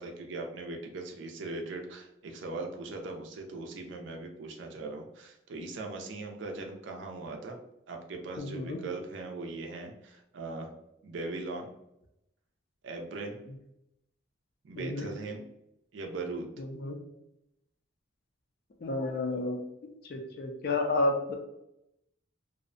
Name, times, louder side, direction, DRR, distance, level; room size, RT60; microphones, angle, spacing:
voice 1, 0.0-7.6 7.9-10.7 11.0-11.7 12.8-13.4 14.6-15.5 15.9-16.5, right 3 dB, 65° right, 2 dB, 0.4 m, -39 dB
voice 2, 8.4-8.8 14.8-15.1 16.6-17.0 18.8-19.6 20.0-21.3, left 2 dB, 50° left, 3 dB, 0.3 m, -31 dB
2.5 x 2.0 x 2.5 m, 0.83 s
head